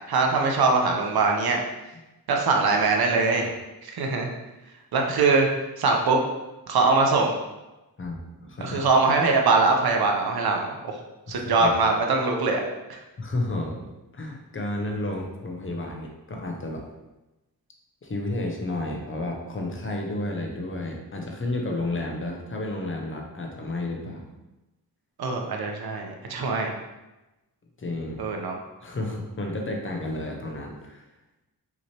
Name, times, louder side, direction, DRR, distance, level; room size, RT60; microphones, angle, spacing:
voice 1, 0.1-1.6 2.3-3.4 4.0-4.3 4.9-5.5 5.8-6.2 6.7-7.4 8.6-11.0 11.3-12.6 12.9-13.0 25.2-26.7 28.2-28.5, right 3 dB, 80° right, 2 dB, 0.8 m, -22 dB
voice 2, 8.0-8.8 11.3-11.7 13.2-16.8 18.0-24.3 27.8-28.2 28.8-31.0, left 2 dB, 35° left, 1 dB, 0.6 m, -31 dB
5.6 x 3.1 x 2.9 m, 1.0 s
wide cardioid pair, 155°, 36 cm